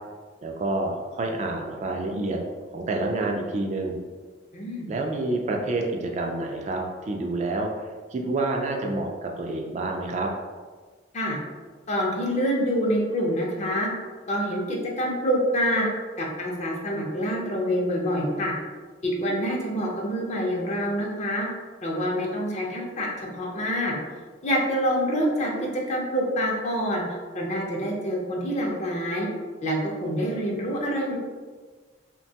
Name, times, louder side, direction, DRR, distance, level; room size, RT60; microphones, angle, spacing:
voice 1, 0.4-2.4 2.7-4.0 4.9-10.3, right 2 dB, 40° right, 1 dB, 0.3 m, -28 dB
voice 2, 4.5-4.9 11.1-11.4 11.9-13.9 14.3-15.9 16.2-18.5 19.0-21.5 21.8-23.9 24.4-27.0 27.3-29.3 29.6-31.2, equal, 40° left, -2 dB, 0.6 m, -26 dB
2.9 x 2.2 x 2.7 m, 1.4 s
head